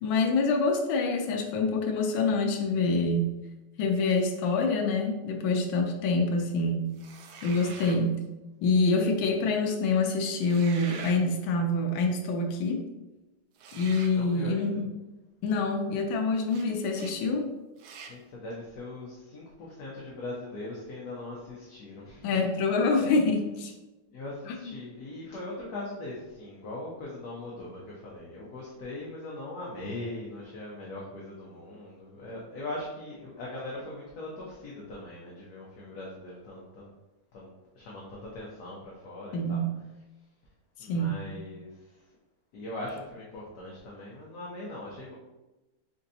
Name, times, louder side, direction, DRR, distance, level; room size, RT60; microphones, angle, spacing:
voice 1, 0.0-3.3 3.8-6.9 7.4-8.2 8.6-12.9 13.7-14.8 15.4-17.5 22.2-23.7 24.5-24.7 39.3-39.8 40.9-41.2, left 3 dB, 85° left, 2 dB, 1.4 m, -26 dB
sound 1, 7.0-8.0 10.3-11.2 13.6-14.2 16.5-16.7 16.9-17.2 17.8-18.2, right 5 dB, 75° right, 0.9 m, -44 dB
voice 2, 7.6-8.0 14.1-14.8 18.1-22.3 24.1-36.9 37.3-37.5 37.8-39.6 40.8-42.1 42.5-45.1, left 2 dB, 60° left, -4 dB, 1.2 m, -40 dB
4.4 x 3.8 x 2.7 m, 1.1 s
omnidirectional pair, 2.1 m